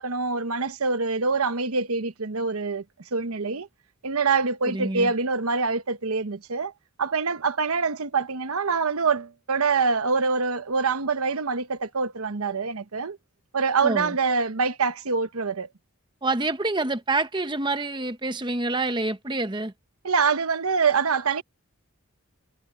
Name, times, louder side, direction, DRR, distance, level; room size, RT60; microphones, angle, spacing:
voice 1, 0.0-2.8 3.1-3.7 4.0-6.7 7.0-13.2 13.5-15.7 20.0-21.4, right 4 dB, 90° right, 1.0 m, -25 dB
voice 2, 4.6-5.1 13.8-14.2 16.2-19.7, right 2 dB, 20° right, 1.0 m, -27 dB
head